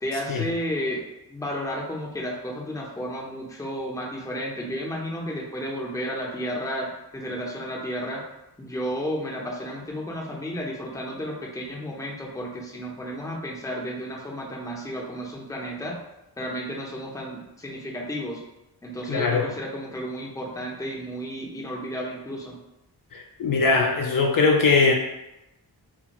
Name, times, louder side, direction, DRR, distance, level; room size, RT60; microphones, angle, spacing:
voice 1, 0.0-1.0 1.3-8.2 8.6-16.0 16.4-18.4 18.8-22.6, equal, 10° left, -2 dB, 0.6 m, -32 dB
voice 2, 19.1-19.4 23.1-24.9, left 4 dB, 55° left, 1 dB, 0.5 m, -21 dB
2.5 x 2.5 x 2.9 m, 0.92 s
cardioid pair, 70°, 40 cm